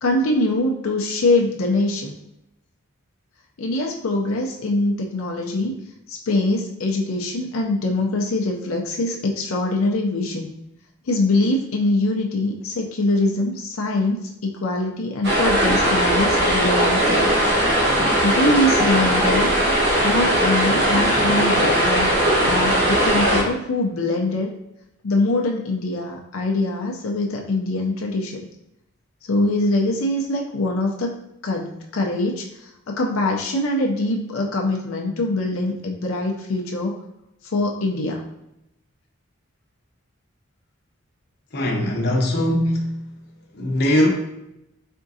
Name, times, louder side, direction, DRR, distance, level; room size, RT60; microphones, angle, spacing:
voice 1, 0.0-2.1 3.6-5.8 6.1-10.5 11.1-17.3 18.2-19.5 20.0-22.1 22.4-24.5 25.0-28.4 29.3-31.1 31.4-32.4 32.9-36.9 37.5-38.2, left 2 dB, 90° left, 0 dB, 0.5 m, -23 dB
sound 1, 15.2-23.4, right 1 dB, 55° right, 1.4 m, -19 dB
voice 2, 41.5-43.0 43.5-44.1, left 1 dB, 50° left, 0 dB, 0.8 m, -20 dB
4.3 x 3.6 x 2.6 m, 0.85 s
head